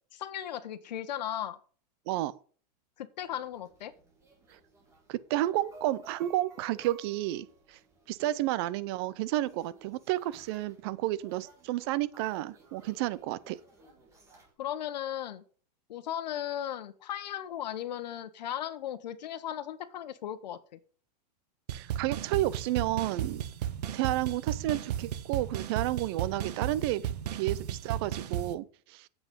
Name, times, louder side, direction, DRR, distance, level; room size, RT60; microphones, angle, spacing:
voice 1, 0.1-1.6 3.0-3.9 14.6-15.4 15.9-20.8, left 11 dB, 80° left, 1.2 m, -36 dB
sound 1, 3.2-14.5, right 2 dB, 15° right, 2.5 m, -56 dB
voice 2, 5.1-7.8 8.1-13.6 21.7-23.4 23.9-29.1, right 15 dB, 40° right, 0.5 m, -31 dB
sound 2, 21.7-28.5, right 10 dB, 75° right, 1.2 m, -34 dB
8.2 x 8.0 x 5.2 m
supercardioid pair, 165°, 21 cm